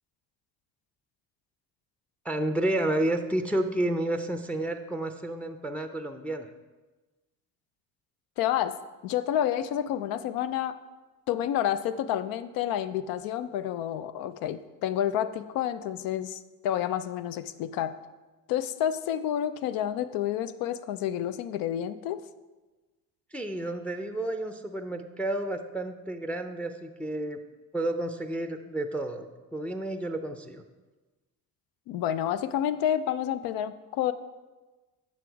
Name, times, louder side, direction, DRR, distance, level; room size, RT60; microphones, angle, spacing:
voice 1, 2.2-6.5 23.3-27.4 27.7-30.6, right 1 dB, 5° left, 6 dB, 0.4 m, -31 dB
voice 2, 8.4-8.7 9.0-10.8 11.3-18.0 18.5-22.2 31.9-34.1, left 10 dB, 85° left, 13 dB, 0.5 m, -29 dB
8.1 x 6.0 x 4.6 m, 1.2 s
cardioid pair, 100°, 34 cm